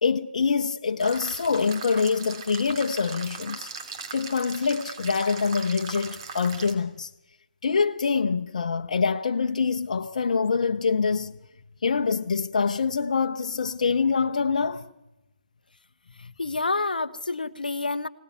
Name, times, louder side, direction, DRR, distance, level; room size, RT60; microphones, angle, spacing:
voice 1, 0.0-3.7 4.1-7.1 7.6-11.4 11.8-14.8 16.2-16.3, left 5 dB, 50° left, 1.1 m, -25 dB
sound 1, 1.0-6.7, right 5 dB, 35° right, 3.1 m, -39 dB
voice 2, 16.2-18.1, left 3 dB, 70° left, 0.9 m, -28 dB
24.5 x 18.0 x 9.4 m
figure-of-eight pair, 140°, 5 cm